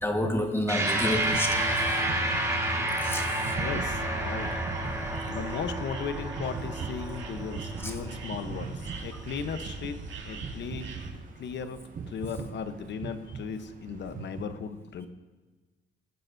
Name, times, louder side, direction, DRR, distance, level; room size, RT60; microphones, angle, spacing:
voice 1, 0.0-1.7 3.0-3.3 7.8-8.0, left 1 dB, 10° left, 1.5 m, -29 dB
sound 1, 0.7-9.4, right 1 dB, 15° right, 4.2 m, -30 dB
sound 2, 1.3-14.4, right 5 dB, 45° right, 0.8 m, -42 dB
voice 2, 3.5-4.6 5.3-10.0 10.2-11.0 11.4-11.8 12.1-15.1, left 6 dB, 65° left, 1.0 m, -36 dB
sound 3, 3.6-11.1, right 4 dB, 65° right, 2.3 m, -42 dB
18.5 x 8.7 x 2.7 m
cardioid pair, 90°, 20 cm